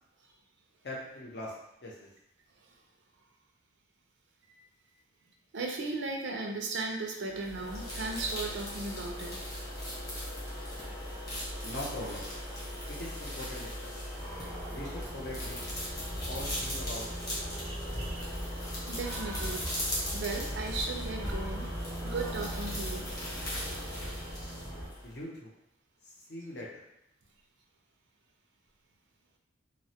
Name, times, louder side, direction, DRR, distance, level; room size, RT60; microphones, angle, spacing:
voice 1, 0.8-1.5 1.8-2.1 11.6-12.3 12.9-13.9 14.7-15.7 16.3-17.1 17.3-17.5 25.0-25.5 26.3-26.7, left 1 dB, 60° left, -3 dB, 0.6 m, -41 dB
voice 2, 5.5-9.3 9.6-9.7 11.3-11.4 17.6-18.4 18.9-19.6 20.1-21.7 22.0-23.1, right 3 dB, 75° right, 1 dB, 0.4 m, -36 dB
sound 1, 7.3-25.2, equal, 20° left, 0.7 m, -38 dB
sound 2, 14.2-24.9, right 1 dB, 15° right, 0.5 m, -41 dB
2.2 x 2.0 x 2.7 m, 0.78 s
head